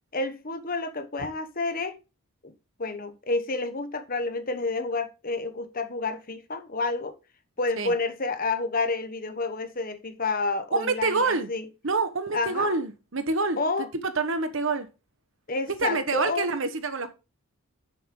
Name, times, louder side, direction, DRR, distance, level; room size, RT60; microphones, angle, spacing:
voice 1, 0.1-2.0 2.4-2.5 2.8-7.1 7.6-11.7 12.3-12.8 13.6-13.9 15.5-16.5, left 3 dB, 40° left, 1.0 m, -29 dB
voice 2, 10.7-11.5 11.8-14.9 15.7-17.1, right 3 dB, 60° right, 1.2 m, -27 dB
9.6 x 6.9 x 3.8 m
head